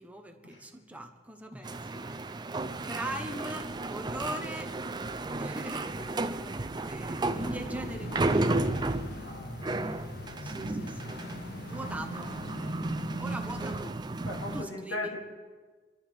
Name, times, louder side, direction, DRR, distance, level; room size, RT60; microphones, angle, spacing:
voice 1, 0.0-2.1 2.8-4.8 5.3-8.8 10.4-11.2 11.6-12.3 13.2-14.0 14.5-15.0, right 1 dB, 10° right, 4 dB, 1.0 m, -41 dB
sound 1, 1.6-14.6, right 2 dB, 25° right, 0.5 m, -33 dB
voice 2, 2.5-2.9 6.0-6.3 9.2-9.7 14.2-15.2, left 2 dB, 80° left, -1 dB, 2.9 m, -39 dB
sound 2, 7.3-13.9, left 3 dB, 60° left, 0.6 m, -43 dB
28.5 x 13.0 x 3.5 m, 1.4 s
head